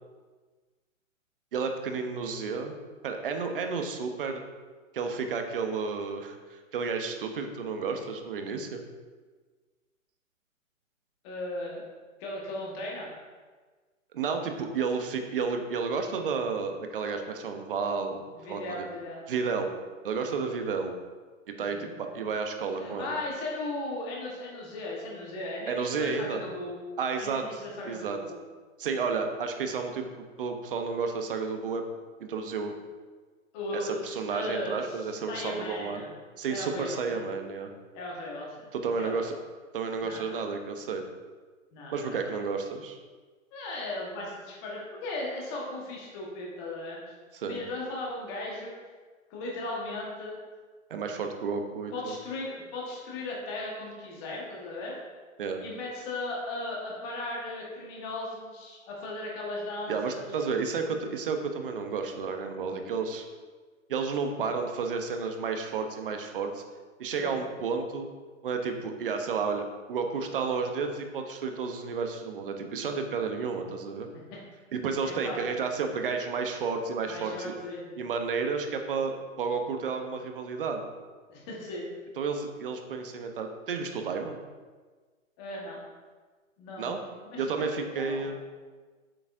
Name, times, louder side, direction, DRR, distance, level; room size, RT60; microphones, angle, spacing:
voice 1, 1.5-2.7 3.0-4.4 4.9-8.8 14.1-18.2 18.5-18.9 19.3-19.7 20.0-20.9 21.5-23.1 25.7-26.4 27.0-28.2 28.8-30.1 30.4-31.8 32.2-32.7 33.7-36.1 36.4-37.7 38.7-39.4 39.7-41.0 41.9-43.0 47.3-47.6 50.9-52.1 55.4-55.6 59.9-63.3 63.9-66.6 67.0-68.1 68.4-74.1 74.7-77.5 78.0-80.9 82.2-84.4 86.8-87.0 87.4-88.4, right 5 dB, 40° right, 5 dB, 0.8 m, -31 dB
voice 2, 11.2-11.8 12.2-13.1 18.3-19.2 21.7-22.0 22.7-26.8 27.2-28.3 33.5-36.1 36.5-37.3 37.9-38.7 39.0-39.3 40.0-40.3 41.7-42.4 43.5-47.0 47.4-48.7 49.3-50.3 51.9-55.0 55.6-60.3 67.1-67.4 74.1-74.4 75.0-75.4 77.1-78.0 81.3-81.9 85.4-85.8 86.6-87.0 87.3-88.3, left 2 dB, 20° left, -3 dB, 1.3 m, -37 dB
7.3 x 6.9 x 2.6 m, 1.4 s
hypercardioid pair, 155°, 41 cm